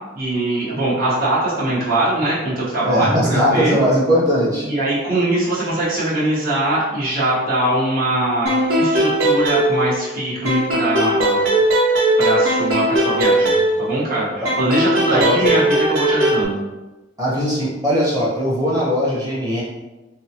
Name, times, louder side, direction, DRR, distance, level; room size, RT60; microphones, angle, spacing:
voice 1, 0.1-3.8 4.6-11.4 12.2-13.5 13.8-16.6, right 1 dB, 45° right, -9 dB, 1.1 m, -22 dB
voice 2, 2.8-4.6 15.1-15.4 17.2-19.6, equal, 20° right, -6 dB, 1.0 m, -19 dB
sound 1, 8.5-10.1 10.5-14.1 14.5-16.5, right 1 dB, 90° right, 0.9 m, -18 dB
4.6 x 2.0 x 2.9 m, 1.1 s
head